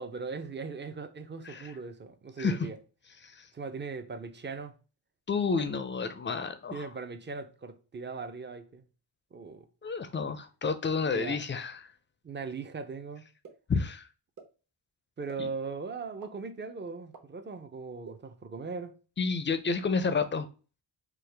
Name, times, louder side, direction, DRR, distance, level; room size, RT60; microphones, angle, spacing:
voice 1, 0.0-2.8 3.5-4.7 5.6-5.7 6.7-8.8 9.3-9.7 11.1-11.4 12.2-13.2 15.2-18.9, right 4 dB, 25° right, 0.5 m, -39 dB
voice 2, 5.3-6.9 9.8-11.8 13.7-14.1 15.4-15.5 19.2-20.5, left 4 dB, 25° left, 0.4 m, -30 dB
sound 1, 13.4-13.5 14.4-14.5 15.3-15.4 16.2-16.3 17.1-17.2 18.0-18.1, right 5 dB, 45° right, 1.1 m, -46 dB
4.6 x 2.1 x 3.3 m
cardioid pair, 90°, 45 cm